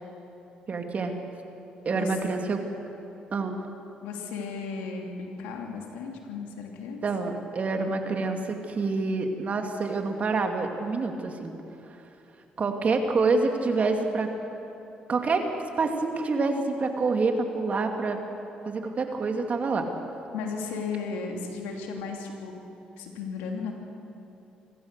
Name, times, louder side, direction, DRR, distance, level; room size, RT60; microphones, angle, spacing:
voice 1, 0.7-1.1 1.9-2.6 3.3-3.7 7.0-11.5 12.6-14.3 15.1-15.5 15.8-18.2 18.6-19.9, right 3 dB, 50° right, 4 dB, 2.5 m, -27 dB
voice 2, 1.8-2.1 4.0-7.0 20.3-22.5 23.0-23.7, left 5 dB, 90° left, 1 dB, 2.8 m, -35 dB
26.5 x 14.5 x 6.8 m, 2.9 s
supercardioid pair, 60°, 3 cm